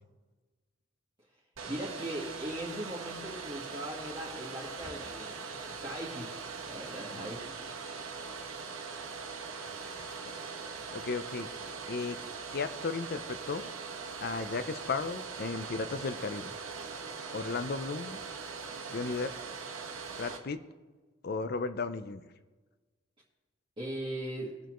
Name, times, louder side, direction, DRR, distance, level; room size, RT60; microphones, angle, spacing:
Domestic sounds home sounds, 1.6-20.4, right 5 dB, 85° right, 1.3 m, -41 dB
voice 1, 1.7-7.6 23.8-24.5, right 1 dB, 25° right, -6 dB, 1.6 m, -40 dB
voice 2, 10.0-10.3 10.9-11.5 11.9-12.2 12.5-13.7 14.2-16.5 17.3-18.2 18.9-19.3 20.2-20.6 21.2-22.2, left 4 dB, 50° left, 11 dB, 0.6 m, -35 dB
20.0 x 6.8 x 3.1 m, 1.3 s
head